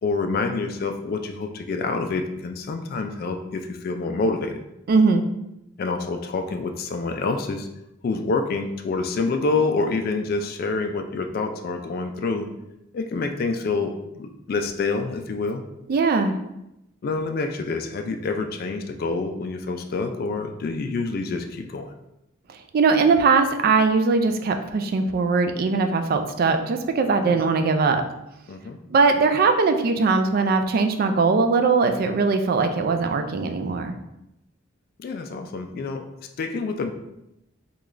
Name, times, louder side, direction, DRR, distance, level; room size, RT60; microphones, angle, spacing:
voice 1, 0.0-4.6 5.8-7.7 8.0-12.5 12.9-15.6 17.0-21.9 27.2-27.4 28.5-28.8 35.0-36.1 36.4-36.9, left 3 dB, 50° left, 5 dB, 0.3 m, -27 dB
voice 2, 4.9-5.2 15.9-16.4 22.7-28.0 28.9-33.9, right 4 dB, 50° right, 7 dB, 0.3 m, -20 dB
3.6 x 2.3 x 3.1 m, 0.87 s
head